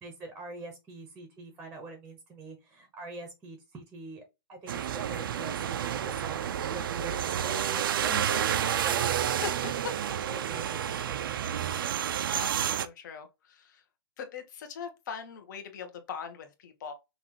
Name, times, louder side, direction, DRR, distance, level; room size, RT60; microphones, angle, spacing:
voice 1, 0.0-4.2 4.5-9.2 10.2-11.7, right 2 dB, 10° right, 0.9 m, -44 dB
sound 1, 4.7-12.9, right 9 dB, 60° right, 0.5 m, -30 dB
voice 2, 9.4-10.0 12.3-13.8 14.2-16.9, left 7 dB, 50° left, 1.2 m, -40 dB
5.8 x 2.6 x 3.0 m
hypercardioid pair, 165°, 13 cm